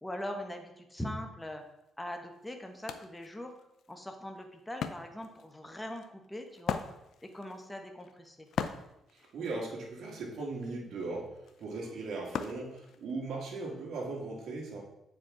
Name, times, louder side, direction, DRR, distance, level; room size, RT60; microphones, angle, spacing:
voice 1, 0.0-1.6 2.0-3.5 3.9-6.8 7.2-8.5 11.9-12.0, left 1 dB, 10° left, 4 dB, 0.9 m, -41 dB
Wood, 1.8-1.9 2.3-13.5, left 7 dB, 65° left, 0.5 m, -41 dB
voice 2, 9.3-11.3 11.6-14.8, right 3 dB, 70° right, -3 dB, 1.8 m, -38 dB
7.8 x 4.9 x 3.7 m, 0.87 s
cardioid pair, 90°, 0 cm